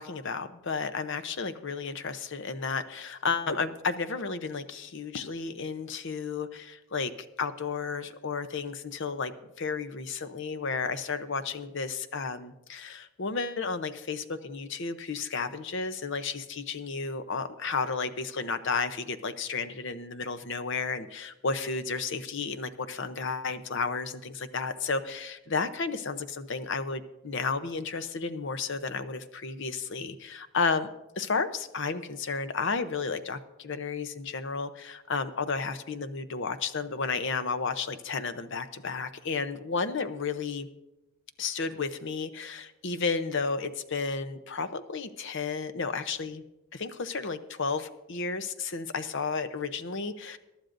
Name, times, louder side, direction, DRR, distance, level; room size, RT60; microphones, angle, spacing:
voice 1, 0.0-7.1 7.4-9.3 9.6-30.9 31.2-40.7 41.4-46.4 46.7-50.4, left 4 dB, 55° left, 10 dB, 0.7 m, -32 dB
22.5 x 11.5 x 2.6 m, 0.96 s
head